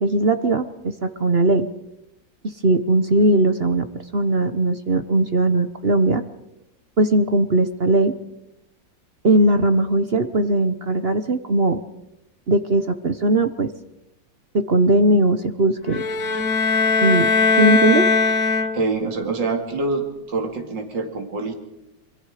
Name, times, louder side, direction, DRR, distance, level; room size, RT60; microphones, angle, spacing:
voice 1, 0.0-1.7 2.4-3.9 4.1-6.2 7.0-8.1 9.2-11.8 12.5-13.7 14.5-16.0 17.0-17.3 17.6-18.1, right 2 dB, 40° right, 10 dB, 0.9 m, -19 dB
sound 1, 15.9-19.1, left 4 dB, 55° left, 1.3 m, -19 dB
voice 2, 18.7-21.5, right 3 dB, 75° right, 3 dB, 3.1 m, -25 dB
27.5 x 23.0 x 4.9 m, 0.86 s
omnidirectional pair, 2.0 m